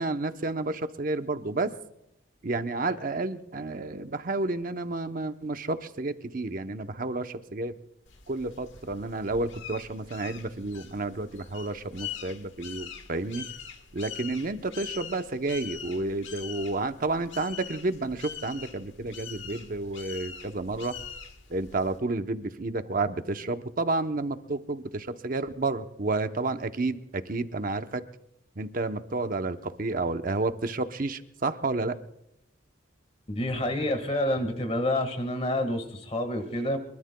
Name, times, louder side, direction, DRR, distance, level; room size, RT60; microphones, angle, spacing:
voice 1, 0.0-1.7 2.4-7.7 8.3-13.5 13.9-21.0 21.5-28.0 28.6-32.0, right 2 dB, 45° right, 9 dB, 0.8 m, -31 dB
sound 1, 8.1-22.0, left 8 dB, 70° left, 1.4 m, -43 dB
voice 2, 33.3-36.8, left 1 dB, 30° left, 8 dB, 1.6 m, -28 dB
24.0 x 22.5 x 2.2 m, 0.78 s
head